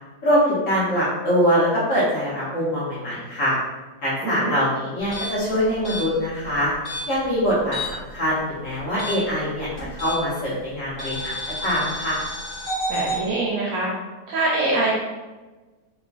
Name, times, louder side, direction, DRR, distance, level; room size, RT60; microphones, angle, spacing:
voice 1, 0.2-3.6 4.0-6.7 7.1-11.4 11.6-12.2, equal, 55° left, -8 dB, 1.1 m, -23 dB
voice 2, 4.2-4.5 12.9-13.9 14.3-14.9, right 2 dB, 70° right, -4 dB, 0.9 m, -24 dB
sound 1, 5.0-8.1 8.4-10.4 11.0-13.2, equal, 10° left, 0.8 m, -31 dB
3.0 x 2.1 x 2.4 m, 1.2 s
omnidirectional pair, 1.8 m